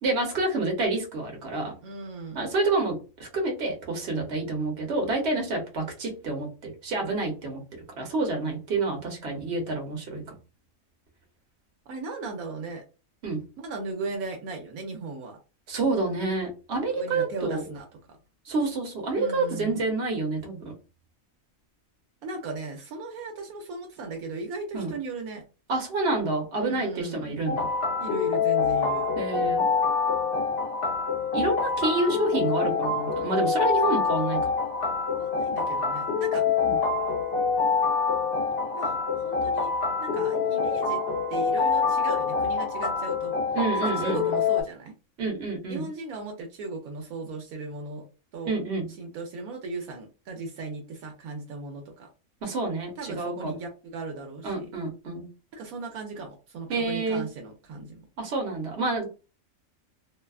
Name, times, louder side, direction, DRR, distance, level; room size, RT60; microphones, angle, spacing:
voice 1, 0.0-1.7 2.3-7.6 8.0-10.3 13.2-13.4 15.7-17.6 18.4-20.7 24.7-24.9 25.7-27.7 29.2-29.6 31.3-34.5 36.6-36.8 43.5-44.4 45.2-45.9 48.4-48.9 52.4-53.6 54.4-55.3 56.7-57.3 58.2-59.1, right 3 dB, 55° right, 2 dB, 1.1 m, -28 dB
voice 2, 1.8-2.5 11.9-12.8 13.6-15.4 16.9-18.2 19.1-19.8 22.2-25.4 26.6-27.4 28.0-29.1 35.1-36.4 38.7-39.7 40.0-41.0 41.3-43.4 43.8-44.9 45.7-48.0 48.3-48.5 49.0-52.1 53.0-54.7 55.5-58.0, right 3 dB, 80° right, 3 dB, 1.0 m, -37 dB
sound 1, 27.5-44.6, left 5 dB, 60° left, 0.7 m, -26 dB
2.7 x 2.2 x 2.3 m, 0.32 s
omnidirectional pair, 1.5 m